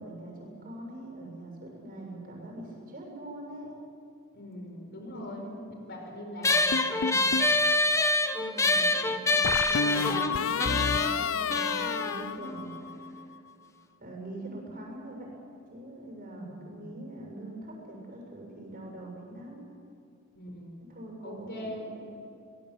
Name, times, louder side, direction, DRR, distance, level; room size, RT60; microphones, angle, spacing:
voice 1, 0.0-3.7 5.1-5.8 8.3-13.3 14.0-15.3 15.7-19.6 20.9-22.2, right 1 dB, 45° right, 0 dB, 7.3 m, -43 dB
voice 2, 4.3-5.4 5.8-7.7 16.3-16.9 20.3-20.8 21.2-21.9, left 1 dB, 55° left, 2 dB, 5.1 m, -42 dB
sound 1, 6.4-13.2, left 2 dB, 15° left, 1.0 m, -27 dB
sound 2, 6.7-7.6 9.4-13.1, left 5 dB, 70° left, 0.6 m, -30 dB
25.0 x 19.5 x 7.8 m, 2.4 s
head